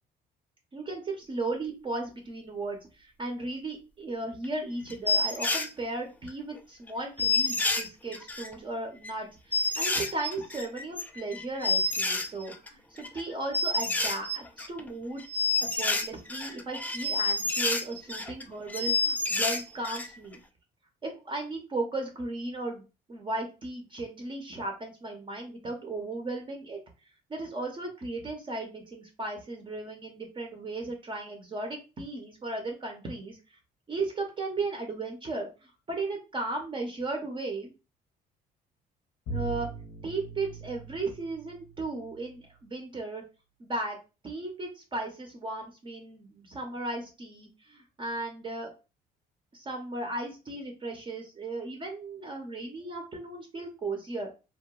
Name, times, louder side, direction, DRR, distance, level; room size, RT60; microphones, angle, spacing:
voice 1, 0.7-20.4 21.0-22.8 23.1-26.8 27.3-33.4 33.9-37.7 39.3-39.7 40.0-43.2 43.6-44.0 44.2-48.7 49.5-54.3, right 2 dB, 30° right, 2 dB, 0.7 m, -36 dB
sound 1, 4.4-4.5 4.9-5.7 6.3-6.4 6.6-6.7 6.9-7.0 7.2-8.5 9.0-9.1 9.5-12.7 13.0-13.2 13.5-14.9 15.2-18.4 18.7-20.1 20.3-20.4, left 3 dB, 10° left, 0.3 m, -28 dB
Bowed string instrument, 39.3-42.3, right 4 dB, 65° left, 0.6 m, -40 dB
2.8 x 2.1 x 2.3 m, 0.30 s
cardioid pair, 110°, 17 cm